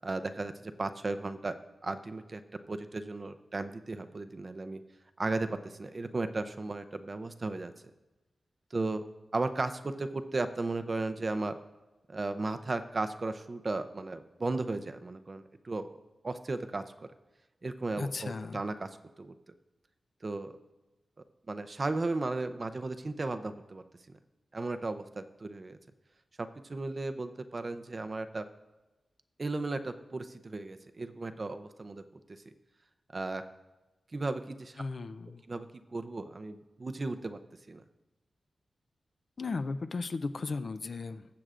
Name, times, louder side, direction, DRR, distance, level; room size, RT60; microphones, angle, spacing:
voice 1, 0.0-1.5 1.8-2.4 2.7-4.8 5.2-7.7 8.7-9.0 9.3-11.6 12.1-15.9 16.2-17.1 17.6-18.9 19.2-19.3 20.2-20.6 21.5-23.8 24.5-25.8 26.4-28.5 29.4-32.0 32.3-32.4 33.1-33.4 34.1-34.8 35.5-37.4 37.7-37.8, right 2 dB, 35° right, 9 dB, 0.5 m, -35 dB
voice 2, 18.0-18.6 34.8-35.4 39.4-41.3, left 3 dB, 50° left, 11 dB, 0.4 m, -36 dB
20.0 x 7.6 x 2.5 m, 1.1 s
wide cardioid pair, 130°, 0 cm